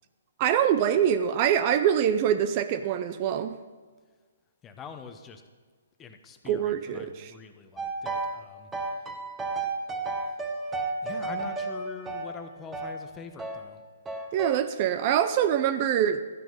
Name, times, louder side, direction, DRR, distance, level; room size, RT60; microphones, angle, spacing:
voice 1, 0.4-3.6 6.5-7.3 14.3-16.2, right 9 dB, 35° right, 11 dB, 0.6 m, -24 dB
voice 2, 4.6-5.4 6.0-8.9 11.0-13.8, left 5 dB, 15° left, 7 dB, 0.9 m, -44 dB
sound 1, 7.8-8.4 8.7-13.0 13.4-13.6 14.1-14.6, right 3 dB, 10° right, 1.1 m, -32 dB
13.5 x 9.2 x 5.5 m, 1.5 s
hypercardioid pair, 145°, 0 cm